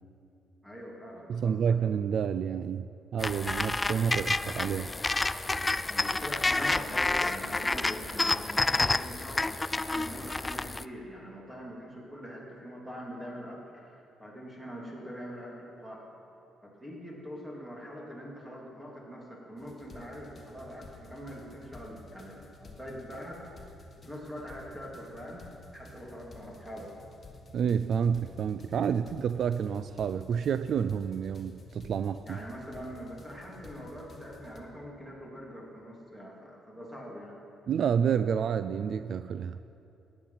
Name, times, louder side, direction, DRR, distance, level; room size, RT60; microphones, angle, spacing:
voice 1, 0.6-1.8 5.9-16.0 16.6-23.4 24.0-25.5 25.7-27.0 32.2-37.4, equal, 5° right, -2 dB, 3.1 m, -43 dB
voice 2, 1.3-4.9 27.5-32.4 37.7-39.6, right 7 dB, 65° right, 12 dB, 0.3 m, -29 dB
sound 1, 3.2-10.8, left 2 dB, 20° left, 0.3 m, -29 dB
sound 2, 19.6-34.6, left 2 dB, 35° left, 1.4 m, -52 dB
14.5 x 9.8 x 5.8 m, 2.8 s
cardioid pair, 90°, 0 cm